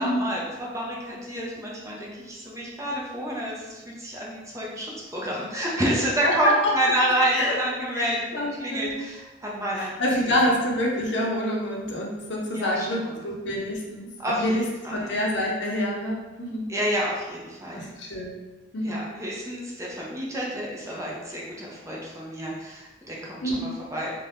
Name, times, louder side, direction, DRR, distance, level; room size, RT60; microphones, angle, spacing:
voice 1, 0.0-9.9 10.3-10.5 12.5-13.1 14.2-14.6 14.8-15.1 16.7-17.9 18.8-24.1, right 1 dB, 15° right, -4 dB, 0.5 m, -29 dB
voice 2, 7.9-9.0 9.7-14.6 14.9-16.7 17.7-18.3 18.7-19.0 23.4-23.8, left 1 dB, 70° left, -3 dB, 0.7 m, -27 dB
2.6 x 2.2 x 3.3 m, 1.1 s
head